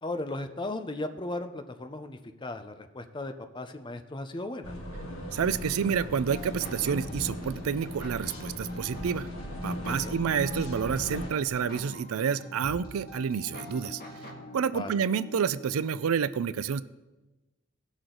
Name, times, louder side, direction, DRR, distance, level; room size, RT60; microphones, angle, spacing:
voice 1, 0.0-4.8 9.9-10.2 14.7-15.0, left 2 dB, 20° left, 8 dB, 0.6 m, -36 dB
sound 1, 4.6-11.3, left 1 dB, 85° left, 1.7 m, -38 dB
voice 2, 5.3-9.3 9.6-14.0 14.5-16.8, right 7 dB, 90° right, 16 dB, 0.4 m, -29 dB
sound 2, 6.3-16.1, left 1 dB, 45° left, 1.9 m, -44 dB
17.5 x 6.2 x 3.8 m, 1.1 s
head